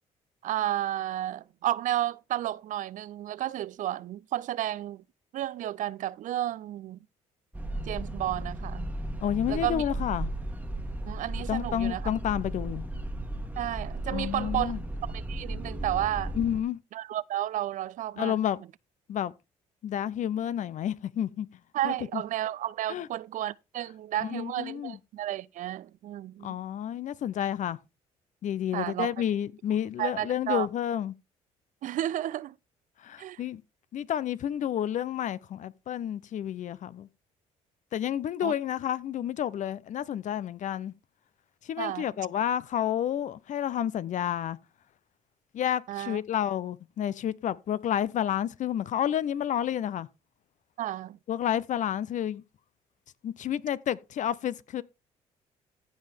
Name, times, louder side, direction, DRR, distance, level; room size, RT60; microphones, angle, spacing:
voice 1, 0.4-5.0 5.3-7.0 7.9-8.9 9.5-9.8 11.0-12.0 13.6-14.7 15.1-16.3 16.9-18.3 21.7-26.6 28.7-29.1 30.0-30.7 31.8-32.6 33.2-33.4 38.4-38.5 41.8-42.1 45.9-46.2 50.8-51.2, right 13 dB, 60° right, 0.5 m, -32 dB
sound 1, 7.5-16.6, right 1 dB, 10° right, 1.4 m, -35 dB
voice 2, 9.2-10.3 11.5-12.9 14.1-14.8 16.3-16.8 18.2-18.6 19.1-19.3 19.8-21.5 21.8-22.2 22.9-23.1 24.2-25.0 26.4-27.8 28.4-31.1 33.0-33.6 33.9-37.1 37.9-40.9 41.7-44.6 45.5-50.1 51.3-52.4 53.2-54.8, left 10 dB, 55° left, 0.7 m, -30 dB
15.0 x 5.6 x 3.4 m
supercardioid pair, 65°, 15 cm